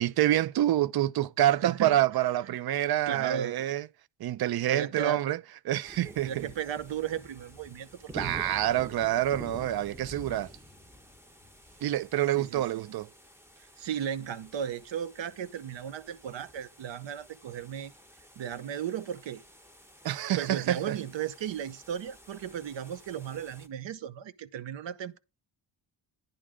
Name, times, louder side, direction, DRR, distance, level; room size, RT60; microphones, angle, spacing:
voice 1, 0.0-3.9 4.2-5.4 5.7-6.5 8.1-10.5 11.8-13.1 20.0-21.0, right 13 dB, 60° right, 0.5 m, -27 dB
voice 2, 1.6-2.0 2.5-2.6 3.1-3.6 4.7-5.2 6.2-8.5 12.3-13.0 13.6-17.9 18.4-19.4 20.3-25.2, right 9 dB, 80° right, 0.9 m, -35 dB
sound 1, 5.8-23.7, equal, 5° right, 1.1 m, -50 dB
10.0 x 3.5 x 6.2 m
wide cardioid pair, 125°, 44 cm